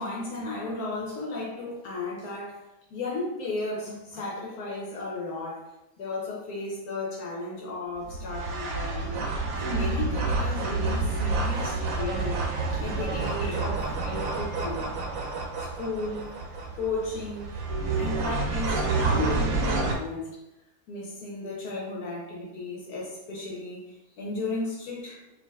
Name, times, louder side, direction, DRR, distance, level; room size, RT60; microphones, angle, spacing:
voice 1, 0.0-5.7 6.0-9.2 9.5-12.4 12.7-14.9 15.6-16.4 16.8-17.5 17.9-20.4 20.9-25.2, left 2 dB, 80° left, -3 dB, 1.2 m, -34 dB
sound 1, 8.0-19.9, right 3 dB, 70° right, 1.0 m, -29 dB
4.7 x 2.5 x 2.3 m, 0.91 s
omnidirectional pair, 1.6 m